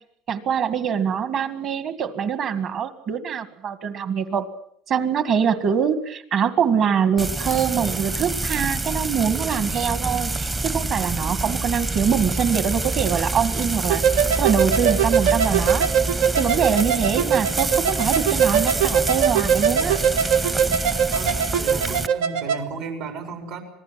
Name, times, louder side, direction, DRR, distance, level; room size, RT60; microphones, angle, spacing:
voice 1, 0.3-4.5 4.9-15.9 16.4-20.0, right 7 dB, 40° right, 12 dB, 1.9 m, -24 dB
Frying (food), 7.2-22.1, right 2 dB, 15° right, 0.9 m, -26 dB
sound 1, 13.9-22.6, right 8 dB, 90° right, 1.5 m, -22 dB
voice 2, 21.1-23.6, right 5 dB, 70° right, 5 dB, 4.7 m, -34 dB
26.0 x 19.0 x 7.7 m, 0.66 s
cardioid pair, 150°, 0 cm